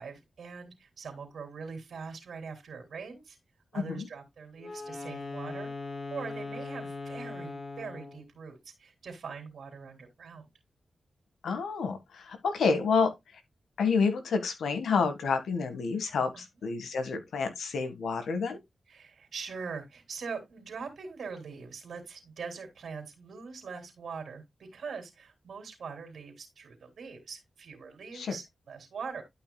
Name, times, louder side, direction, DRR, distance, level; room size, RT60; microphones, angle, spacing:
voice 1, 0.0-3.4 3.7-5.7 6.1-10.5 16.3-16.4 18.9-29.2, right 5 dB, 75° right, 3.1 m, -42 dB
voice 2, 3.7-4.1 11.4-13.1 13.8-18.6 28.1-28.4, left 5 dB, 85° left, 1.7 m, -29 dB
Wind instrument woodwind instrument, 4.6-8.3, left 3 dB, 50° left, 3.0 m, -39 dB
11.5 x 5.8 x 2.3 m
cardioid pair, 60°, 0 cm